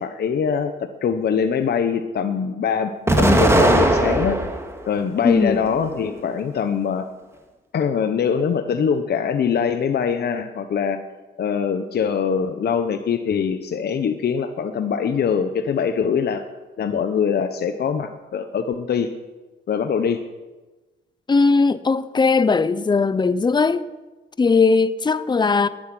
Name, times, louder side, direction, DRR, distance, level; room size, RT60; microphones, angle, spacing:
voice 1, 0.0-4.4 4.9-7.1 7.7-11.0 11.4-16.5 16.8-19.1 19.7-20.2, left 6 dB, 55° left, 1.1 m, -23 dB
Explosion, 3.1-4.7 5.2-6.1, right 1 dB, 15° right, 2.2 m, -19 dB
voice 2, 5.2-5.6 21.3-23.8 24.4-25.7, left 4 dB, 20° left, 0.8 m, -18 dB
11.5 x 10.5 x 10.0 m
cardioid pair, 90°, 20 cm